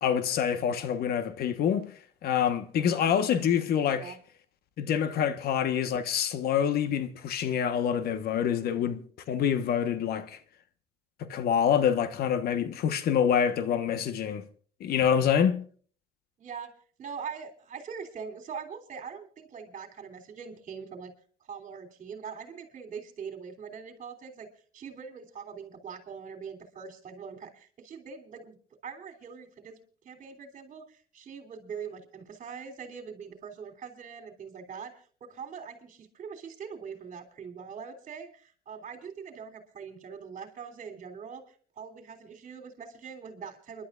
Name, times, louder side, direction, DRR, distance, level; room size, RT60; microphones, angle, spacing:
voice 1, 0.0-1.9 2.2-4.1 4.8-10.4 11.2-14.4 14.8-15.6, left 8 dB, 65° left, 1.3 m, -26 dB
voice 2, 16.4-16.7 17.0-21.1 21.4-24.5 24.7-28.6 28.8-29.8 30.0-43.8, right 6 dB, 50° right, 3.2 m, -42 dB
29.5 x 11.5 x 2.5 m
cardioid pair, 110°, 17 cm